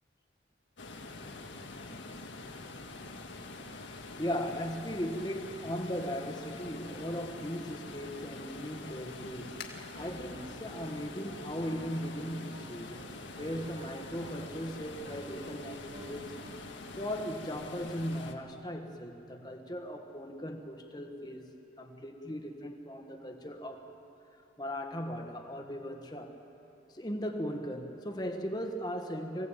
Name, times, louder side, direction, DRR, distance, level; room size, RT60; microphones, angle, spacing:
sound 1, 0.8-18.3, left 2 dB, 85° left, 1.8 m, -45 dB
voice 1, 3.8-13.1 13.4-16.4 17.0-24.0 24.6-26.4 26.9-29.5, equal, 20° left, 4 dB, 1.5 m, -38 dB
sound 2, 7.7-12.9, left 5 dB, 55° left, 2.3 m, -55 dB
Piano, 10.0-16.8, right 2 dB, 30° right, 0.6 m, -52 dB
25.0 x 17.0 x 9.0 m, 2.9 s
head